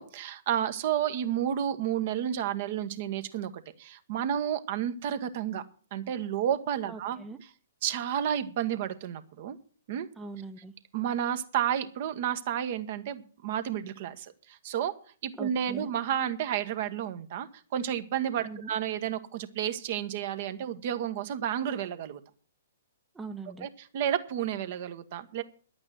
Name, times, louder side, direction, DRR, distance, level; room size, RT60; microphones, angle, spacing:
voice 1, 0.0-5.6 5.9-7.2 7.8-9.6 9.9-10.1 10.9-14.9 15.2-22.2 23.6-25.4, right 10 dB, 45° right, 11 dB, 1.2 m, -31 dB
voice 2, 6.9-7.4 10.2-10.7 15.4-15.9 18.4-18.7 23.1-23.7, right 4 dB, 10° right, 6 dB, 0.7 m, -41 dB
11.0 x 8.7 x 7.5 m, 0.41 s
figure-of-eight pair, 115°, 0 cm